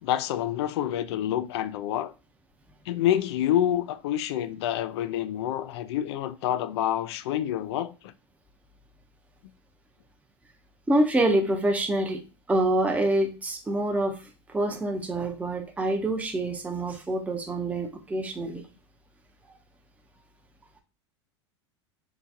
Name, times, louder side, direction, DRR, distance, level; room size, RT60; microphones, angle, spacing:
voice 1, 0.0-2.1 2.9-8.1, left 11 dB, 65° left, 0.4 m, -27 dB
voice 2, 10.9-12.2 12.5-14.2 14.5-18.6, right 1 dB, 10° right, 0.6 m, -26 dB
4.7 x 2.3 x 2.6 m
hypercardioid pair, 90°, 15 cm